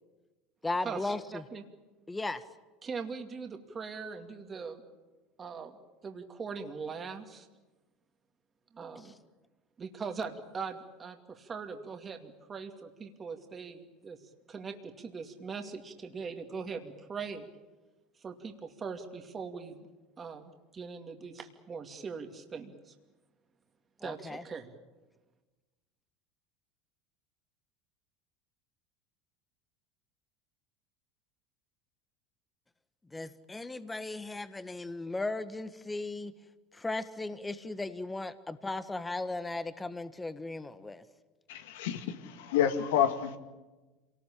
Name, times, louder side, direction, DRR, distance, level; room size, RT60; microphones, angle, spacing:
voice 1, 0.6-1.4 2.1-2.4 24.0-24.4 33.1-36.3 36.7-41.0, left 2 dB, 15° left, 1.5 m, -36 dB
voice 2, 2.8-4.8 5.4-5.8 6.0-7.5 8.7-9.1 9.8-14.2 14.5-17.5 18.2-19.9 20.2-22.9 24.0-24.7, right 5 dB, 30° right, 2.5 m, -41 dB
voice 3, 41.5-43.4, left 9 dB, 75° left, 2.0 m, -29 dB
26.5 x 19.0 x 8.7 m
hypercardioid pair, 90°, 0 cm